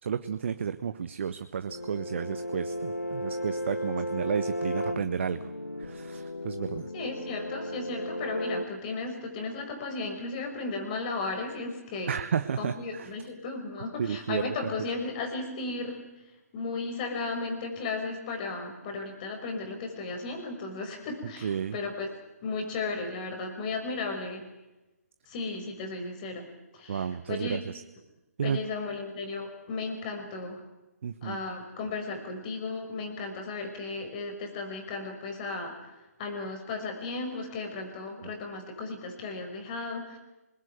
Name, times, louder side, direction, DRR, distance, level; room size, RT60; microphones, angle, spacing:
voice 1, 0.0-5.5 5.8-6.9 12.1-13.1 14.0-14.7 21.4-21.8 26.9-27.8 28.4-28.6 31.0-31.4 38.2-38.3, right 7 dB, 50° right, 11 dB, 1.1 m, -32 dB
sound 1, 1.7-8.6, equal, 80° left, 1.9 m, -35 dB
voice 2, 6.9-12.2 12.6-16.0 16.5-22.1 22.4-24.5 25.3-26.4 26.7-27.6 28.4-30.6 31.2-35.8 36.2-40.2, left 3 dB, 30° left, 5 dB, 6.0 m, -35 dB
27.5 x 21.5 x 9.4 m, 1.0 s
figure-of-eight pair, 140°, 9 cm